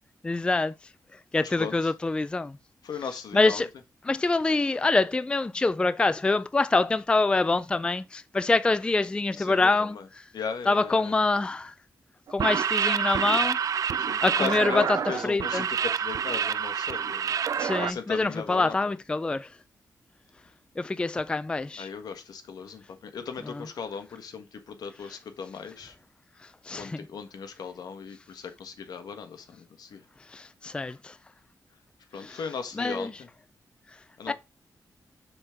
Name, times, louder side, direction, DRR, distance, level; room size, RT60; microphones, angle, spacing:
voice 1, 0.2-0.7 1.3-2.6 3.3-3.7 4.1-10.2 10.7-11.7 12.3-13.6 14.2-15.0 15.3-15.7 17.6-19.5 20.8-21.9 23.4-23.6 26.7-27.1 30.3-31.1 32.2-32.4 32.8-33.1 34.3-34.4, left 3 dB, 15° left, 0.3 m, -25 dB
voice 2, 1.4-1.9 2.8-3.6 9.4-10.1 10.3-11.2 14.0-17.3 17.8-18.8 21.8-25.9 26.8-30.0 32.1-33.3 34.2-34.3, left 6 dB, 80° left, 1.3 m, -37 dB
sound 1, 12.3-17.9, right 8 dB, 60° right, 0.4 m, -27 dB
6.8 x 3.6 x 5.7 m
wide cardioid pair, 125°, 7 cm